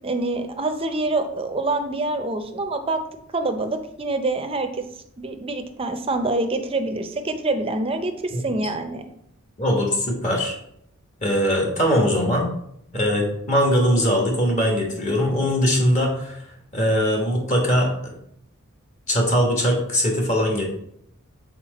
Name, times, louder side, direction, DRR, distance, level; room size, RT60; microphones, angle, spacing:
voice 1, 0.0-3.0 3.3-4.8 5.2-9.1, right 2 dB, 25° right, 6 dB, 0.6 m, -26 dB
voice 2, 9.6-10.5 11.2-12.5 12.9-16.4 16.7-18.1 19.1-20.6, equal, 35° left, 0 dB, 1.3 m, -21 dB
5.9 x 4.2 x 4.1 m, 0.74 s
head